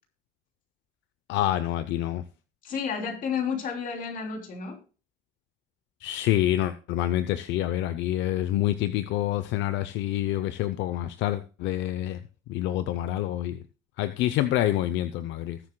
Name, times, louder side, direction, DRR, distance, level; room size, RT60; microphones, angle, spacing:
voice 1, 1.3-2.2 6.0-12.2 12.5-13.6 14.0-15.6, left 13 dB, 70° left, 0.7 m, -27 dB
voice 2, 2.6-4.8, left 6 dB, 45° left, 3.2 m, -31 dB
19.5 x 7.8 x 2.2 m
cardioid pair, 135°, 19 cm